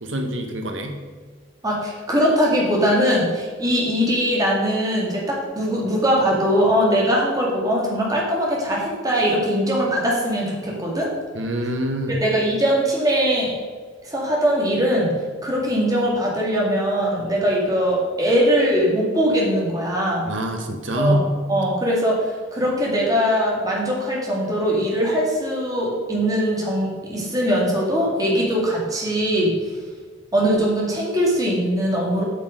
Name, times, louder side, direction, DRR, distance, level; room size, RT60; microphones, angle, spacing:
voice 1, 0.0-1.0 11.3-12.1 20.3-21.3, equal, 80° right, 3 dB, 1.3 m, -25 dB
voice 2, 1.6-11.1 12.1-13.5 14.0-15.1 15.4-20.3 20.9-21.2 21.5-29.6 30.3-32.2, equal, 20° right, -3 dB, 2.2 m, -21 dB
8.1 x 6.3 x 5.1 m, 1.5 s
head